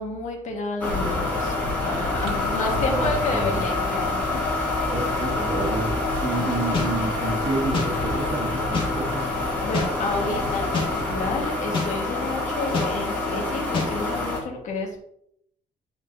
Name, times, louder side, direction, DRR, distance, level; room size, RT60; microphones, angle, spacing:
voice 1, 0.0-4.4 6.9-7.0 9.6-15.0, left 3 dB, 60° left, 1 dB, 1.5 m, -30 dB
sound 1, 0.8-14.4, left 2 dB, 10° left, 2.1 m, -27 dB
sound 2, 0.9-11.4, left 2 dB, 80° left, 1.8 m, -35 dB
voice 2, 2.6-3.6 4.9-5.9 6.2-9.3, right 2 dB, 40° right, 0 dB, 1.4 m, -29 dB
sound 3, 6.7-6.9 7.7-7.9 8.7-8.9 9.7-9.9 10.7-10.9 11.7-11.9 12.7-12.9 13.7-13.9, left 4 dB, 35° left, 2.0 m, -25 dB
8.8 x 4.5 x 2.7 m, 0.72 s
cardioid pair, 165°, 14 cm